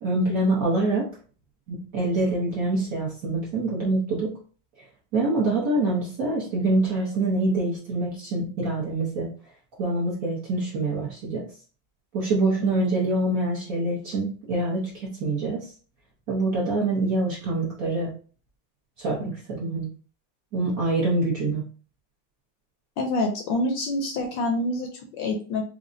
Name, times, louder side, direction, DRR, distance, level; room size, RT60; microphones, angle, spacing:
voice 1, 0.0-1.1 1.7-4.3 5.1-9.3 9.8-11.4 12.1-15.7 16.3-18.1 19.0-19.9 20.5-21.6, right 2 dB, 55° right, -5 dB, 1.0 m, -25 dB
voice 2, 23.0-25.6, left 2 dB, 75° left, 2 dB, 1.2 m, -26 dB
5.0 x 2.2 x 2.5 m, 0.40 s
omnidirectional pair, 2.4 m